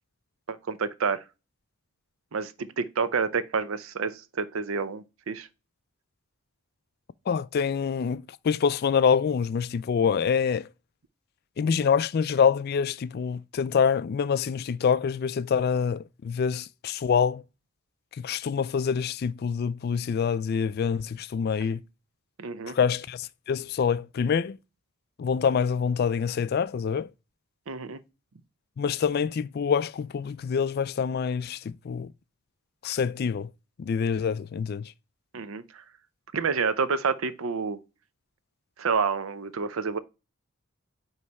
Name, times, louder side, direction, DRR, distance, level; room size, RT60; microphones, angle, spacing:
voice 1, 0.5-1.2 2.3-5.5 22.4-22.8 27.7-28.0 35.3-35.8 36.3-37.8 38.8-40.0, right 5 dB, 80° right, 0.6 m, -29 dB
voice 2, 7.3-10.7 11.6-17.4 18.2-21.8 22.7-24.6 25.2-27.1 28.8-32.1 32.8-33.5 33.8-34.9, left 6 dB, 50° left, 0.3 m, -26 dB
9.4 x 3.2 x 4.1 m
head